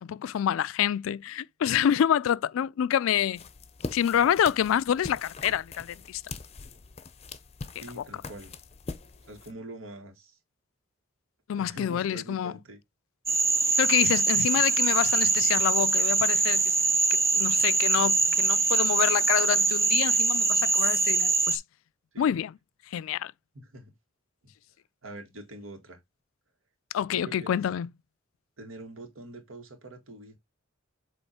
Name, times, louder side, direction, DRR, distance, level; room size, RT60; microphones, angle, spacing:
voice 1, 0.0-3.4 3.9-6.2 8.0-8.1 11.5-12.5 13.8-16.7 17.3-21.6 22.2-22.5 22.9-23.3 26.9-27.9, left 9 dB, 80° left, 0.3 m, -27 dB
sound 1, 3.3-9.5, left 3 dB, 30° left, 0.6 m, -42 dB
voice 2, 7.8-8.5 9.2-10.4 11.5-12.8 22.1-22.4 23.5-23.9 25.0-26.0 27.1-27.6 28.6-30.4, right 2 dB, 80° right, 1.9 m, -44 dB
Frog, 13.3-21.6, right 3 dB, 15° right, 0.7 m, -23 dB
7.9 x 3.1 x 4.2 m
head